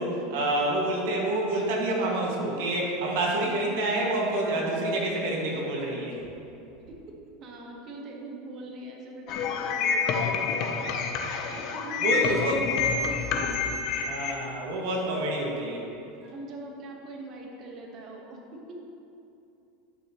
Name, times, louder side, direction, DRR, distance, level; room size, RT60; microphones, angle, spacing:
voice 1, 0.0-6.2 10.8-11.1 12.0-12.6 14.1-15.8, right 1 dB, 75° right, -2 dB, 2.0 m, -28 dB
voice 2, 7.4-10.2 11.5-13.6 16.2-18.4 18.7-18.8, right 2 dB, 45° right, 0 dB, 1.4 m, -41 dB
sound 1, 9.3-14.3, left 5 dB, 55° left, 0.8 m, -28 dB
11.5 x 6.1 x 3.1 m, 2.7 s
supercardioid pair, 110°, 0 cm